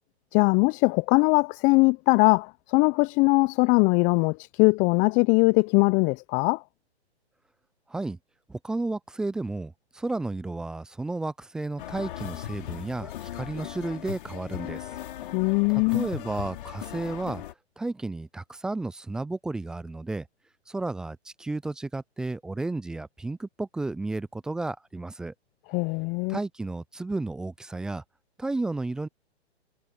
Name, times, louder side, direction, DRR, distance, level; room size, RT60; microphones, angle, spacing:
voice 1, 0.3-6.6 15.3-16.1 25.7-26.4, left 29 dB, 25° left, 0.8 m, -21 dB
voice 2, 8.5-14.9 15.7-17.4 17.8-20.3 20.7-25.3 26.3-28.0 28.4-29.1, right 2 dB, ahead, 0.4 m, -32 dB
sound 1, 11.8-17.5, left 12 dB, 50° left, 3.1 m, -38 dB
figure-of-eight pair, 125°, 34 cm